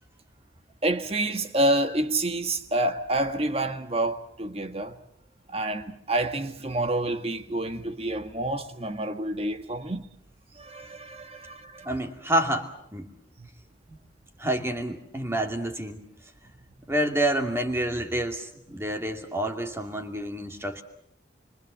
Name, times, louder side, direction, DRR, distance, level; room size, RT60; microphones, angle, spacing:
voice 1, 0.8-5.0 5.5-10.0 10.6-11.9, right 1 dB, 30° right, 1.6 m, -28 dB
voice 2, 11.8-13.1 13.9-14.0 14.4-16.0 16.9-20.8, right 1 dB, 15° right, 2.5 m, -28 dB
27.0 x 25.0 x 7.5 m
head